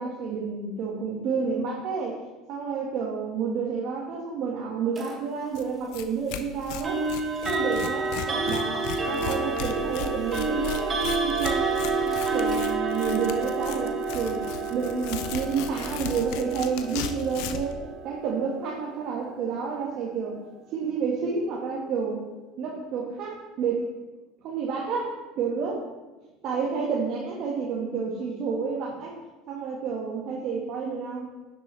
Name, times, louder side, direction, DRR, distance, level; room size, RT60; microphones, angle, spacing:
voice 1, 0.0-2.2 2.5-7.0 7.4-14.4 14.7-20.4 20.7-22.2 22.6-23.8 24.4-25.8 26.4-29.2 29.5-31.3, right 5 dB, 55° right, -3 dB, 1.7 m, -30 dB
sound 1, 5.0-5.2 6.8-19.7, right 3 dB, 30° right, 1.7 m, -29 dB
Tearing, 5.5-5.6 5.9-6.0 6.3-17.7, left 8 dB, 70° left, 0.7 m, -36 dB
10.5 x 7.3 x 3.4 m, 1.2 s
hypercardioid pair, 85°, 0 cm